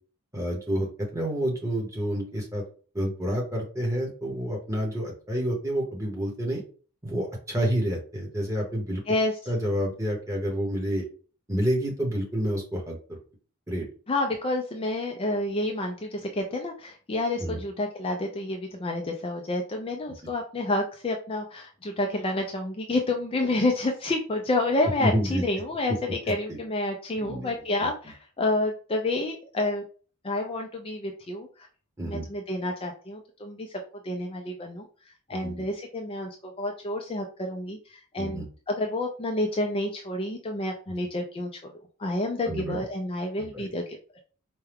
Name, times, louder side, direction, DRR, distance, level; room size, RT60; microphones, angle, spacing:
voice 1, 0.3-2.6 2.9-6.6 7.0-9.0 9.5-11.0 11.5-13.0 13.7-13.8 17.4-17.6 25.0-25.4 27.1-27.5 27.8-27.9 32.0-32.2 35.3-35.6 38.2-38.5 42.4-42.8 43.4-43.7, equal, 15° right, -1 dB, 1.1 m, -29 dB
voice 2, 9.1-9.5 14.1-29.8 30.2-31.7 32.0-33.7 34.0-34.8 35.3-41.7 42.0-44.2, left 2 dB, 25° left, 2 dB, 0.4 m, -29 dB
4.5 x 2.2 x 3.5 m, 0.39 s
head